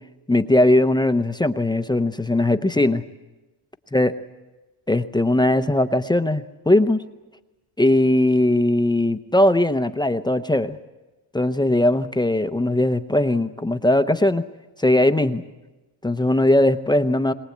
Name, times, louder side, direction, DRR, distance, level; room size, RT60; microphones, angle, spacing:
voice 1, 0.3-3.0 3.9-4.1 4.9-7.0 7.8-10.8 11.3-14.5 14.8-15.4 16.0-17.3, left 1 dB, 10° left, 9 dB, 0.7 m, -19 dB
22.5 x 19.5 x 8.5 m, 1.1 s
cardioid pair, 125°, 46 cm